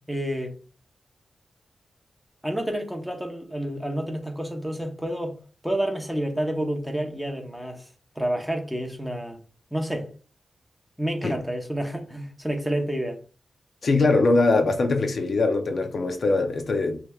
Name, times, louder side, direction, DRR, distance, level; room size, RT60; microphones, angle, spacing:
voice 1, 0.1-0.5 2.4-5.4 5.6-7.9 8.2-9.4 9.7-10.1 11.0-13.2, right 1 dB, ahead, 1.0 m, -29 dB
voice 2, 13.8-17.0, left 3 dB, 55° left, 0.6 m, -22 dB
6.5 x 3.3 x 2.3 m
wide cardioid pair, 145°, 0 cm